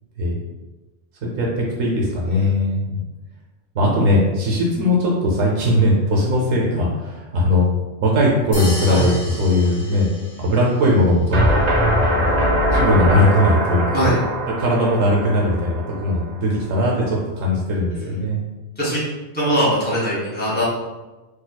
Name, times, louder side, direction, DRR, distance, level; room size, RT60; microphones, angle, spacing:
voice 1, 1.2-3.0 3.7-7.7 8.0-10.1 10.4-11.6 12.7-14.1 14.6-18.4, left 1 dB, 80° right, -3 dB, 1.1 m, -19 dB
sound 1, 8.5-10.8, left 1 dB, 30° left, 0.6 m, -33 dB
sound 2, 11.3-16.3, equal, 45° right, 0.6 m, -21 dB
voice 2, 19.3-20.6, right 1 dB, 10° left, -9 dB, 1.3 m, -21 dB
4.1 x 2.7 x 2.2 m, 1.1 s
omnidirectional pair, 1.3 m